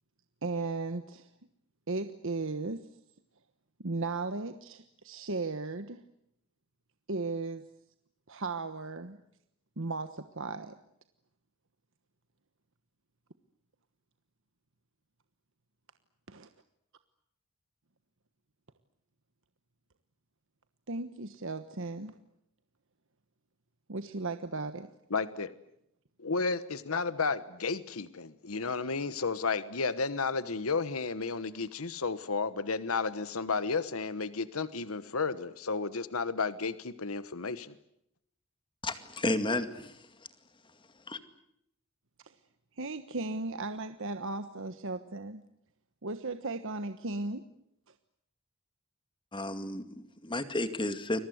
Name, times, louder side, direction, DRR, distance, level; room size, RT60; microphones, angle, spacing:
voice 1, 0.4-1.3 1.9-2.9 3.8-6.0 7.1-7.6 8.3-9.2 9.8-10.7 16.3-16.5 20.9-22.2 23.9-24.9 42.3-42.4 42.8-45.4 46.0-47.4, right 3 dB, 65° right, 9 dB, 1.3 m, -36 dB
voice 2, 25.1-25.5 26.2-37.7, left 4 dB, 75° left, 14 dB, 1.2 m, -32 dB
voice 3, 38.8-40.1 41.1-41.2 49.3-51.2, left 2 dB, 25° left, 9 dB, 2.2 m, -32 dB
29.5 x 23.0 x 8.0 m, 0.78 s
head